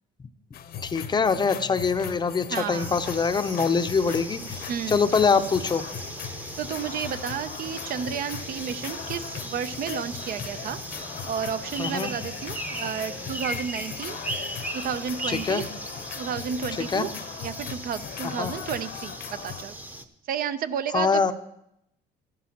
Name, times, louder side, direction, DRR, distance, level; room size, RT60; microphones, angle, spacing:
sound 1, 0.5-19.6, left 9 dB, 65° left, 0.8 m, -39 dB
voice 1, 0.8-5.8 11.8-12.1 15.3-15.6 16.9-17.1 18.4-18.5 20.9-21.3, left 5 dB, 25° left, 11 dB, 0.6 m, -24 dB
voice 2, 2.5-3.0 4.7-5.1 6.6-10.8 11.2-14.2 14.7-15.6 16.2-17.1 17.4-19.7 20.3-21.3, right 7 dB, 60° right, 12 dB, 0.6 m, -32 dB
sound 2, 2.7-20.0, right 1 dB, 10° right, 0.8 m, -38 dB
14.0 x 11.5 x 2.9 m, 0.81 s
cardioid pair, 110°, 17 cm